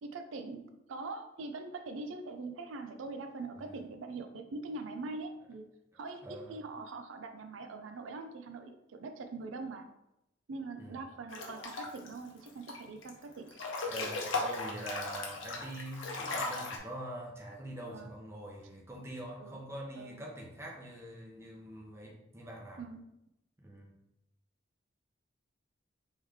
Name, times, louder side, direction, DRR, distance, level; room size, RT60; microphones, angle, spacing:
voice 1, 0.0-5.6 5.9-9.9 10.5-13.6 17.9-18.1 19.4-19.6 20.0-20.2 22.8-23.0, right 3 dB, 90° right, 6 dB, 0.4 m, -43 dB
voice 2, 6.2-6.5 10.8-11.0 13.8-22.8 23.6-23.9, right 1 dB, 15° right, -2 dB, 0.7 m, -44 dB
Breathing / Bathtub (filling or washing) / Splash splatter, 11.3-12.1 12.5-13.1 13.5-16.8, left 3 dB, 85° left, 0.7 m, -37 dB
3.6 x 3.1 x 3.5 m, 0.87 s
head